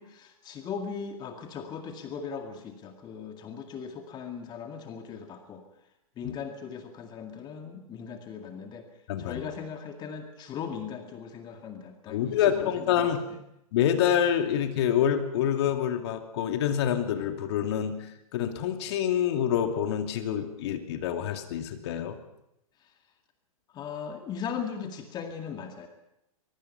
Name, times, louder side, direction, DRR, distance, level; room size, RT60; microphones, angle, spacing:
voice 1, 0.0-5.6 6.2-8.9 9.2-13.1 23.7-25.9, left 7 dB, 20° left, 5 dB, 2.1 m, -38 dB
voice 2, 9.1-9.4 12.1-13.2 13.7-22.2, left 9 dB, 45° left, 6 dB, 2.5 m, -27 dB
24.0 x 22.0 x 5.6 m, 0.82 s
figure-of-eight pair, 110°, 19 cm